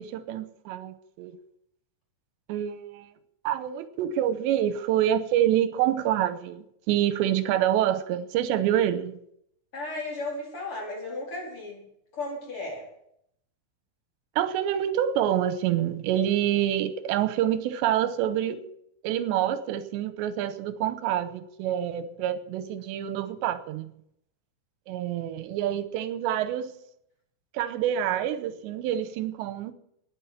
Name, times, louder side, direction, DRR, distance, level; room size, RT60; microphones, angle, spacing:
voice 1, 0.0-1.4 2.5-3.1 3.4-9.2 14.4-18.6 19.0-23.9 24.9-26.7 27.5-29.7, right 11 dB, 90° right, 3.1 m, -27 dB
voice 2, 9.7-11.8 12.1-12.8, left 2 dB, 30° left, 5.1 m, -34 dB
11.5 x 10.0 x 9.5 m
omnidirectional pair, 5.1 m